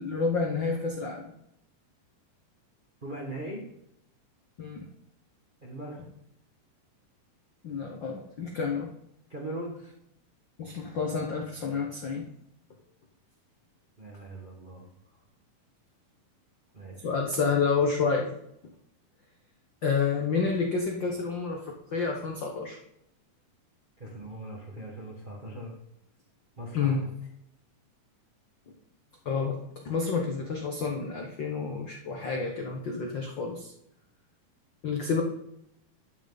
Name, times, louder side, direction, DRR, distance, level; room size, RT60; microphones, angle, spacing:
voice 1, 0.0-1.3 4.6-4.9 7.6-8.9 10.6-12.2 17.0-18.4 19.8-21.6 21.9-22.8 26.7-27.1 29.2-29.5 29.8-33.7 34.8-35.2, left 5 dB, 80° left, 1 dB, 1.0 m, -29 dB
voice 2, 3.0-3.6 5.6-6.0 9.3-9.8 14.0-14.8 16.7-17.1 24.0-25.7 26.6-27.1, right 1 dB, 70° right, 0 dB, 0.4 m, -40 dB
11.5 x 9.1 x 4.0 m, 0.77 s
omnidirectional pair, 3.8 m